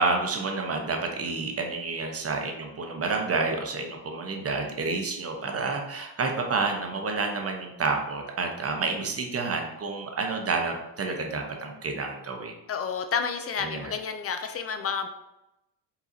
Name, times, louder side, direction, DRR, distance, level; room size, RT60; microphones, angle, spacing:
voice 1, 0.0-12.6 13.6-13.9, right 3 dB, 30° right, 3 dB, 0.9 m, -29 dB
voice 2, 12.7-15.1, left 6 dB, 30° left, 7 dB, 0.4 m, -30 dB
4.6 x 4.0 x 2.7 m, 0.90 s
supercardioid pair, 80°, 49 cm